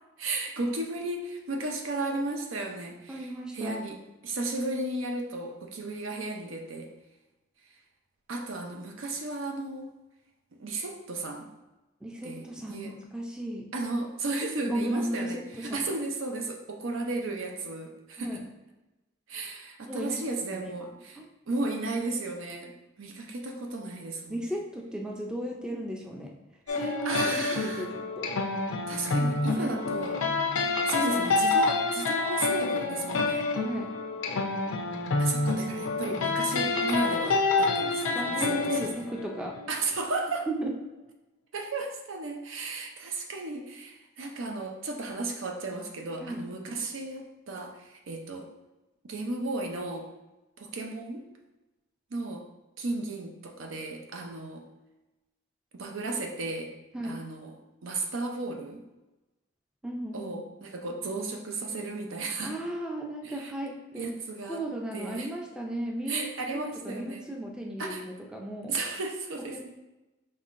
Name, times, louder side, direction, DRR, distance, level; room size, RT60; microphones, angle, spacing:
voice 1, 0.2-3.3 3.5-4.0 4.2-6.9 8.3-9.9 10.6-11.5 12.2-12.9 13.7-18.4 19.3-21.2 21.5-24.4 26.7-26.8 27.0-27.9 28.9-30.2 30.9-33.5 35.2-38.7 39.7-40.5 41.5-48.5 49.0-50.1 50.6-51.2 52.1-52.4 52.8-54.7 55.7-56.7 57.0-57.5 57.8-58.8 60.1-62.5 63.2-63.5 64.0-64.6 64.9-65.3 66.1-67.2 67.8-68.0 68.7-69.6, right 2 dB, 80° right, 3 dB, 0.6 m, -34 dB
voice 2, 3.1-3.8 12.0-13.7 14.7-15.9 18.2-18.4 19.8-20.7 21.2-21.3 24.3-26.3 26.7-28.3 29.5-29.7 31.0-31.2 33.6-33.9 38.1-39.6 40.5-40.7 46.2-46.5 56.9-57.2 59.8-60.3 62.4-64.1 64.5-68.8 69.5-69.6, right 1 dB, 5° right, -1 dB, 0.4 m, -35 dB
sound 1, 26.7-39.9, left 3 dB, 85° left, 0.5 m, -28 dB
5.5 x 3.2 x 2.5 m, 1.0 s
head